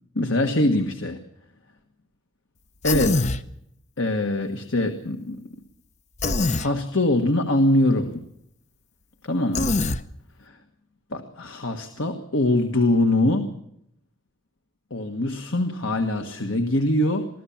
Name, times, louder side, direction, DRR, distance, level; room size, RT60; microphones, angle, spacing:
voice 1, 0.1-1.2 2.8-3.3 4.0-5.5 6.6-8.2 9.2-9.8 10.4-10.6 11.1-13.5 14.9-17.3, left 1 dB, 60° left, 5 dB, 1.5 m, -23 dB
Human voice, 2.8-3.4 6.2-6.7 9.5-10.0, left 2 dB, 30° left, 0.7 m, -23 dB
23.5 x 15.5 x 7.2 m, 0.76 s
head